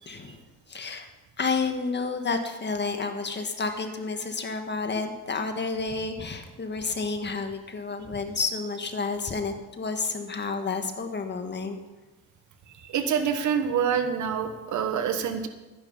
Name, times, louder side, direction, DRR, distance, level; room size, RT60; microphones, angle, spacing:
voice 1, 0.1-0.4 0.7-1.1 1.4-11.8, left 4 dB, 35° left, 6 dB, 1.7 m, -30 dB
voice 2, 12.8-15.5, right 7 dB, 70° right, 8 dB, 1.5 m, -26 dB
12.5 x 10.0 x 5.7 m, 1.1 s
cardioid pair, 90°, 30 cm